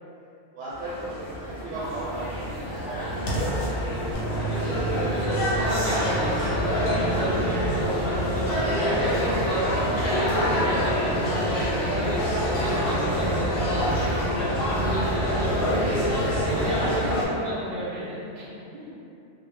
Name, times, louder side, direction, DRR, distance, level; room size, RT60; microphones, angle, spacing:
voice 1, 0.5-3.3 3.6-3.7 16.8-16.9, right 2 dB, 75° right, -9 dB, 0.9 m, -37 dB
sound 1, 0.7-17.3, equal, 60° left, 0.7 m, -26 dB
Bass guitar, 4.1-10.4, right 6 dB, 5° right, 0.8 m, -36 dB
voice 2, 4.5-9.6 10.1-19.0, equal, 60° right, -7 dB, 0.4 m, -33 dB
2.0 x 2.0 x 3.3 m, 2.6 s
omnidirectional pair, 1.2 m